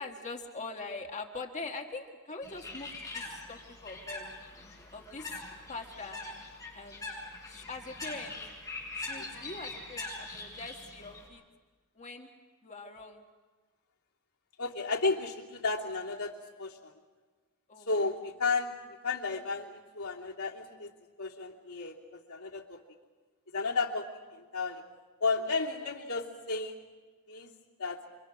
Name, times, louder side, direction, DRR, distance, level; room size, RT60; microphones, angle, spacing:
voice 1, 0.0-4.3 4.9-5.4 5.7-6.2 6.7-7.1 7.4-8.4 8.9-11.4 12.0-12.3 12.6-13.2 17.7-17.9, left 3 dB, 35° left, 3 dB, 1.7 m, -43 dB
Bird, 2.4-11.3, left 2 dB, 15° left, 7.5 m, -43 dB
voice 2, 9.2-9.5 14.6-16.9 17.9-18.8 19.0-20.9 21.2-22.8 23.5-24.8 25.2-26.8 27.3-27.5 27.8-28.0, left 3 dB, 80° left, -2 dB, 3.1 m, -33 dB
28.0 x 24.5 x 6.3 m, 1.4 s
head